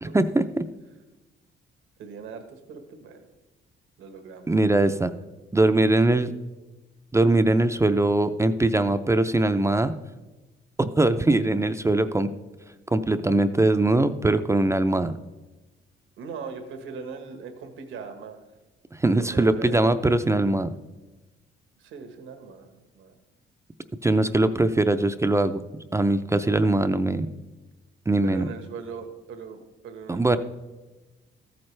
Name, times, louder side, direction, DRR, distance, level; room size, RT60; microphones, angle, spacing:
voice 1, 0.0-0.6 4.5-5.1 5.5-6.3 7.1-9.9 10.8-12.3 12.9-15.2 19.0-20.7 24.0-25.6 25.9-27.3 28.1-28.5 30.1-30.4, right 2 dB, 15° right, 10 dB, 0.5 m, -21 dB
voice 2, 2.0-3.3 4.0-4.5 16.2-18.4 19.1-20.0 21.8-23.2 28.2-30.4, right 5 dB, 80° right, 7 dB, 1.3 m, -40 dB
14.0 x 8.8 x 3.3 m, 1.1 s
cardioid pair, 90°, 20 cm